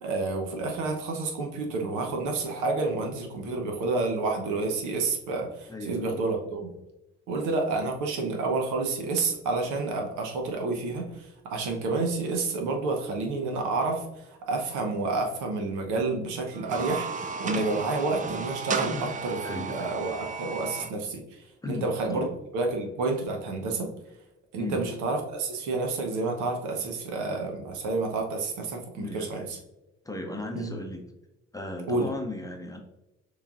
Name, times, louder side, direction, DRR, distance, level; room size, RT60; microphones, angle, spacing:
voice 1, 0.0-6.7 7.3-19.0 19.2-21.2 21.7-22.3 22.5-23.9 24.5-29.6 30.5-30.7 31.9-32.1, right 3 dB, 60° right, 2 dB, 0.9 m, -29 dB
voice 2, 5.7-6.2 18.9-19.1 19.4-19.9 21.6-22.3 24.6-24.8 28.9-29.5 30.0-31.0 31.5-32.8, left 2 dB, 10° left, 3 dB, 0.8 m, -36 dB
sound 1, 16.5-20.9, right 5 dB, 25° right, 0.4 m, -34 dB
6.5 x 3.1 x 2.5 m, 0.94 s
figure-of-eight pair, 50°, 33 cm